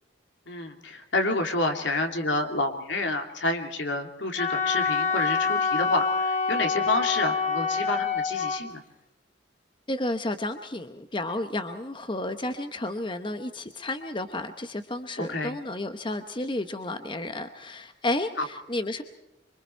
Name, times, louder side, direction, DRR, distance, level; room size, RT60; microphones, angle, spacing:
voice 1, 0.5-8.8 15.2-15.5 18.4-18.5, left 2 dB, 75° left, 5 dB, 2.8 m, -29 dB
Wind instrument woodwind instrument, 4.4-8.6, left 5 dB, 40° left, 2.0 m, -26 dB
voice 2, 9.9-19.0, left 1 dB, 25° left, 8 dB, 0.9 m, -32 dB
26.0 x 24.5 x 4.5 m, 0.93 s
head